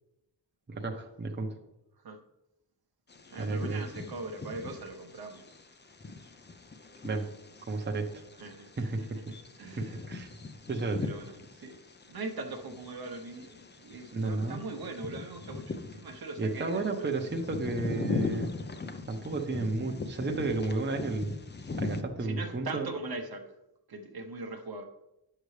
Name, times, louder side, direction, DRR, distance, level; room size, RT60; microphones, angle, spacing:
voice 1, 0.7-1.6 3.4-3.8 7.0-7.3 7.6-8.2 8.8-9.0 9.8-10.3 10.7-11.0 14.1-14.6 16.4-18.5 19.1-21.3 21.7-22.9, right 3 dB, 25° right, 2 dB, 0.8 m, -32 dB
Bird vocalization bird call bird song, 3.1-22.0, left 3 dB, 25° left, 0.6 m, -40 dB
voice 2, 3.3-5.4 8.4-9.1 9.6-10.0 11.0-11.8 12.1-17.2 22.2-23.5 23.9-24.8, right 3 dB, 60° right, 4 dB, 0.9 m, -41 dB
9.6 x 6.7 x 3.2 m, 0.92 s
wide cardioid pair, 110°, 42 cm